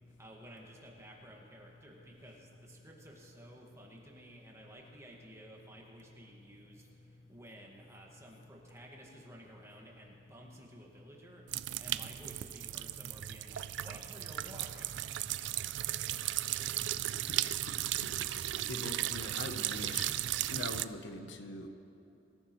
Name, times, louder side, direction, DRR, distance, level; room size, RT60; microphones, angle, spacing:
voice 1, 0.0-15.0, right 1 dB, 15° right, -1 dB, 1.8 m, -54 dB
sound 1, 11.5-20.8, right 13 dB, 65° right, 0.3 m, -36 dB
voice 2, 18.3-20.1 20.5-21.7, left 2 dB, 70° left, 6 dB, 0.9 m, -42 dB
23.0 x 14.5 x 3.1 m, 2.9 s
head